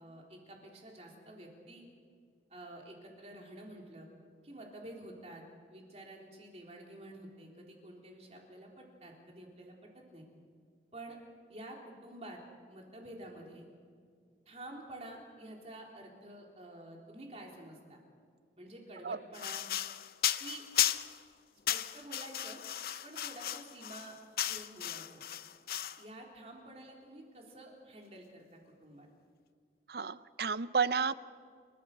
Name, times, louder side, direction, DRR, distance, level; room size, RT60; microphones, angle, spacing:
voice 1, 0.0-1.8 2.5-4.1 4.4-5.4 5.7-10.3 10.9-11.2 11.5-12.4 12.7-13.7 14.5-18.0 18.6-19.6 20.4-20.6 21.7-22.6 23.0-24.2 24.5-25.2 26.0-29.1, right 1 dB, 35° right, 0 dB, 3.8 m, -49 dB
sound 1, 19.3-21.2 21.7-26.0, left 11 dB, 55° left, 0.6 m, -35 dB
voice 2, 29.9-31.1, right 5 dB, 60° right, 16 dB, 0.6 m, -31 dB
30.0 x 14.5 x 6.8 m, 2.1 s
head